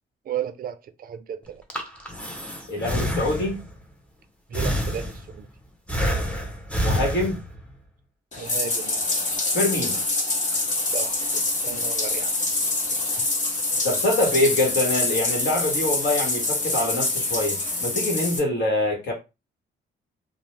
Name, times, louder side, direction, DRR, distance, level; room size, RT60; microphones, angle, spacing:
voice 1, 0.3-1.6 4.5-5.5 8.4-9.0 10.8-12.3 18.4-18.5, right 9 dB, 45° right, 0.4 m, -34 dB
Breathing, 1.5-3.8 4.5-5.5 5.9-7.7, equal, 5° left, 0.7 m, -28 dB
voice 2, 2.7-3.6 6.8-7.4 9.5-10.0 13.8-19.1, left 1 dB, 60° left, 1.2 m, -24 dB
Bathtub (filling or washing), 8.3-18.4, left 2 dB, 40° left, 1.0 m, -25 dB
2.5 x 2.0 x 3.2 m
cardioid pair, 90°, 20 cm